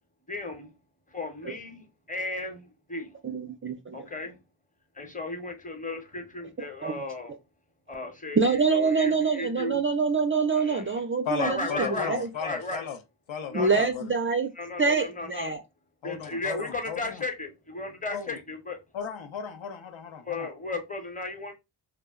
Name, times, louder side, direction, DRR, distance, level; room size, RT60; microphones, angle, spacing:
voice 1, 0.3-0.7 1.1-3.2 3.9-4.4 5.0-7.3 7.9-9.8 10.5-10.9 11.4-12.9 13.5-13.9 14.6-15.5 16.0-18.8 20.2-21.5, left 2 dB, 15° left, 0.9 m, -35 dB
voice 2, 3.2-4.0 6.8-6.9 8.4-12.3 13.5-14.5 14.8-15.6, right 4 dB, 30° right, 0.3 m, -25 dB
voice 3, 11.2-13.0 13.3-14.1 16.0-17.2 18.1-18.4 18.9-20.5, left 6 dB, 70° left, 0.7 m, -35 dB
2.3 x 2.0 x 3.5 m
cardioid pair, 55°, 49 cm